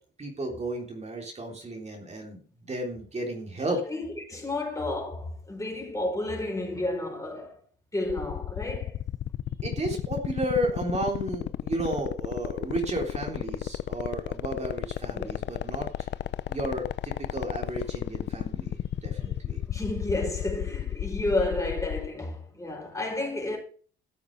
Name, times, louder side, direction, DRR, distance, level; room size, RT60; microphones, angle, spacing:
voice 1, 0.2-3.8 9.6-16.1 16.5-19.6, right 1 dB, 35° right, 3.5 m, -33 dB
voice 2, 3.7-7.6 7.9-9.0 9.9-10.0 14.6-14.7 15.1-15.3 19.7-23.6, left 2 dB, 15° left, 4.9 m, -31 dB
sound 1, 8.1-22.1, left 11 dB, 60° left, 0.6 m, -32 dB
14.0 x 7.2 x 5.3 m
cardioid pair, 90°, 20 cm